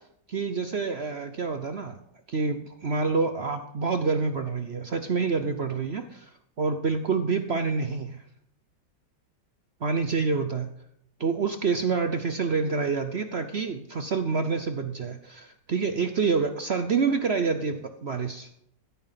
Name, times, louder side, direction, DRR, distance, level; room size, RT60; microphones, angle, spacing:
voice 1, 0.3-2.0 2.3-6.3 6.6-8.2 9.8-10.7 11.2-18.5, right 4 dB, 55° right, 8 dB, 0.7 m, -27 dB
15.0 x 9.1 x 5.7 m, 0.72 s
omnidirectional pair, 2.0 m